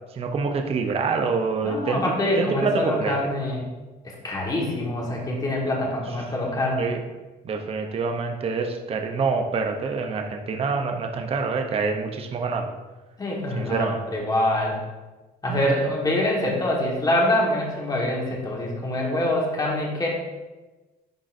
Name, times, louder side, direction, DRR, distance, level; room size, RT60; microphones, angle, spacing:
voice 1, 0.1-2.0 2.4-3.1 6.8-7.0 7.4-12.7 13.5-14.0 15.5-15.9, right 4 dB, 35° right, 4 dB, 0.6 m, -26 dB
voice 2, 1.6-3.6 4.0-6.9 13.2-14.8 15.4-20.1, left 1 dB, 20° left, -2 dB, 1.5 m, -25 dB
10.5 x 3.8 x 2.6 m, 1.2 s
cardioid pair, 110°, 17 cm